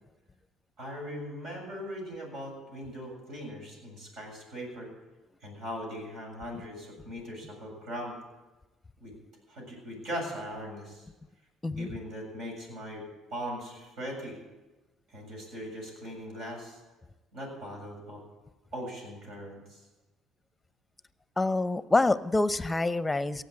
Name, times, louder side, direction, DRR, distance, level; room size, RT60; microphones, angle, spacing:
voice 1, 0.8-4.9 5.4-8.2 9.0-9.2 9.5-11.1 11.8-14.4 15.1-16.8 17.3-18.2 18.7-19.8, equal, 65° right, 0 dB, 7.4 m, -40 dB
voice 2, 21.4-23.4, left 2 dB, 15° left, 14 dB, 0.8 m, -26 dB
16.5 x 8.2 x 9.9 m, 1.1 s
hypercardioid pair, 65°, 0 cm